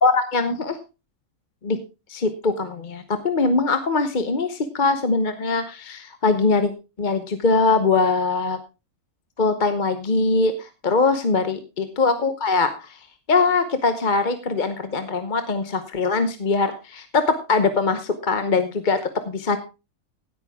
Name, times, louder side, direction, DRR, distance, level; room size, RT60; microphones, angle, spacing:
voice 1, 0.0-0.8 1.6-1.8 2.1-6.7 7.0-8.6 9.4-13.0 13.3-19.6, left 3 dB, 40° left, 9 dB, 1.0 m, -22 dB
16.5 x 8.9 x 3.6 m, 0.29 s
omnidirectional pair, 1.5 m